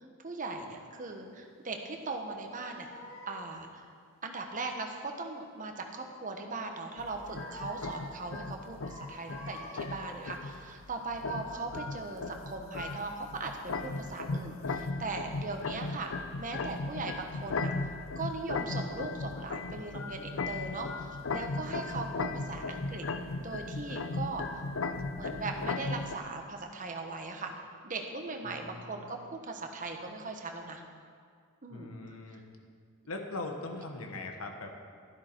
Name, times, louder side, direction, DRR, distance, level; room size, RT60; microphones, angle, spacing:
voice 1, 0.2-2.9 3.3-3.9 4.2-16.1 16.4-23.1 23.4-24.6 25.2-27.5 27.8-30.8 31.6-32.0 32.3-32.4, right 3 dB, 40° right, 3 dB, 1.1 m, -39 dB
sound 1, 2.0-3.6 6.8-8.3 8.8-10.6 11.1-11.3, left 1 dB, 35° left, 1.9 m, -48 dB
sound 2, 7.0-26.2, left 3 dB, 65° left, 0.6 m, -37 dB
voice 2, 28.4-29.1 31.7-32.4 33.1-34.8, left 2 dB, 90° left, 3 dB, 1.2 m, -41 dB
12.0 x 11.0 x 4.6 m, 2.1 s
head